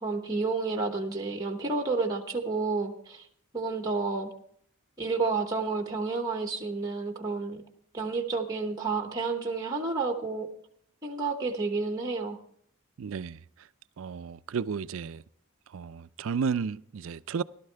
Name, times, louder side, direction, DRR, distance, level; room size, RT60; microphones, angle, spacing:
voice 1, 0.0-3.3 3.5-4.3 5.0-7.6 7.9-10.5 11.0-12.4, right 3 dB, 20° right, 1.0 m, -30 dB
voice 2, 13.0-13.4 14.0-15.2 15.7-17.4, right 6 dB, 65° right, 0.4 m, -32 dB
17.5 x 12.0 x 3.4 m
head